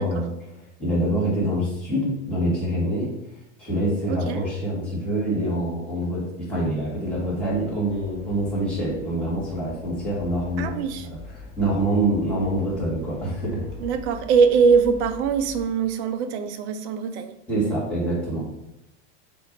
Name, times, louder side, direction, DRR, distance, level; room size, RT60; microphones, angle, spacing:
voice 1, 0.0-3.1 3.6-10.9 11.1-13.7 17.5-18.6, right 1 dB, 5° left, -8 dB, 2.0 m, -26 dB
voice 2, 4.1-4.4 10.6-11.1 13.8-17.3, right 5 dB, 65° right, 9 dB, 0.8 m, -22 dB
sound 1, 7.1-15.7, left 3 dB, 20° left, 1.1 m, -43 dB
6.5 x 2.8 x 5.3 m, 0.90 s
supercardioid pair, 155°, 36 cm